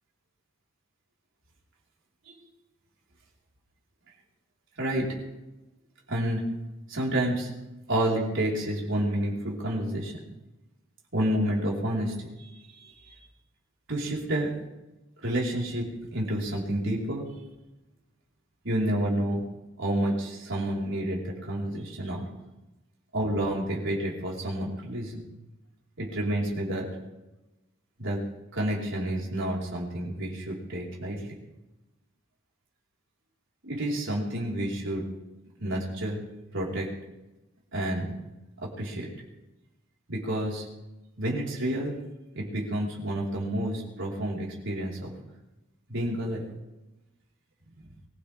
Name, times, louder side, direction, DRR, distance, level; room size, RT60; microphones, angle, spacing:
voice 1, 4.8-5.2 6.1-6.5 6.9-7.5 7.9-10.2 11.1-13.1 13.9-14.5 15.2-17.2 18.6-19.4 19.8-22.2 23.1-25.3 26.0-26.9 28.0-28.2 28.5-31.3 33.6-35.0 35.6-36.2 36.5-36.9 37.7-38.2 38.6-39.1 40.1-40.6 41.2-42.0 42.3-45.1 45.9-46.4 47.8-47.9, right 1 dB, 65° right, -4 dB, 5.1 m, -29 dB
24.0 x 16.0 x 3.8 m, 1.0 s
head